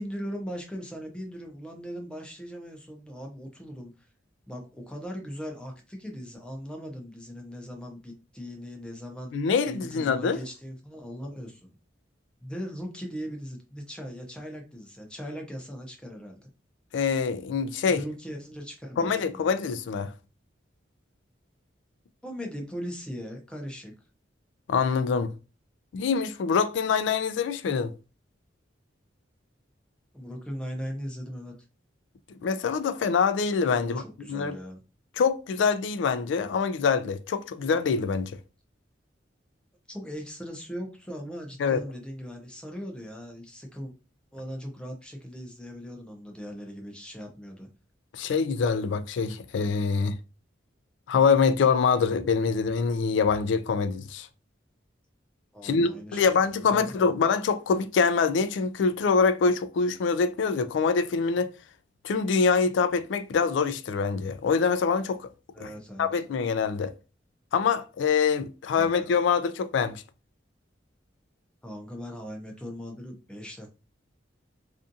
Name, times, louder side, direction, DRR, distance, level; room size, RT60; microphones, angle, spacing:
voice 1, 0.0-4.1 4.5-9.3 9.7-11.8 12.4-16.5 17.8-19.5 22.2-23.9 30.1-31.5 33.8-34.8 39.9-43.9 44.3-47.7 55.5-56.9 65.5-66.1 68.7-69.0 71.6-73.7, equal, 5° left, 0.5 m, -39 dB
voice 2, 9.3-10.4 16.9-18.0 19.0-20.1 24.7-25.3 25.9-27.9 32.4-34.0 34.3-34.6 35.2-38.3 41.6-41.8 48.1-50.2 51.1-54.3 55.6-61.5 62.0-65.3 65.6-65.7 66.0-66.9 67.5-70.0, left 5 dB, 75° left, 0.3 m, -25 dB
2.5 x 2.4 x 2.6 m
head